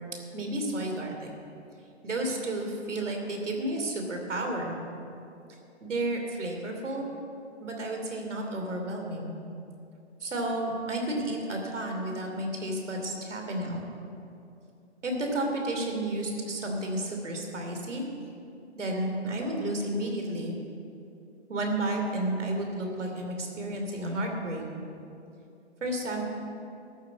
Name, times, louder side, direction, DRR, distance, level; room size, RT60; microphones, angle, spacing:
voice 1, 0.3-1.3 2.0-4.7 5.8-7.1 7.6-9.3 10.2-13.8 15.0-18.0 18.8-20.5 21.5-24.6 25.8-26.2, right 1 dB, 85° right, 2 dB, 3.0 m, -31 dB
14.0 x 6.2 x 8.9 m, 2.6 s
hypercardioid pair, 150°, 35 cm